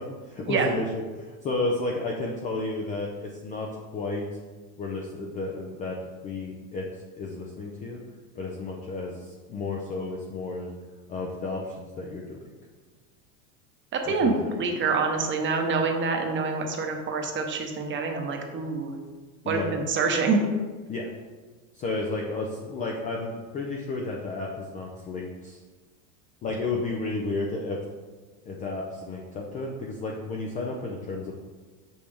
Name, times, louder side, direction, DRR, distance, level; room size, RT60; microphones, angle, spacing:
voice 1, 0.0-4.2 4.8-6.0 6.2-6.9 7.2-8.0 8.4-10.7 11.1-12.5 14.1-14.5 19.4-19.7 20.9-21.1 21.8-25.6 26.4-27.8 28.5-31.3, left 2 dB, 20° left, -1 dB, 0.3 m, -32 dB
voice 2, 13.9-14.3 14.6-18.9 19.5-20.4, right 4 dB, 25° right, 3 dB, 0.8 m, -26 dB
5.7 x 5.3 x 3.4 m, 1.4 s
supercardioid pair, 130°, 44 cm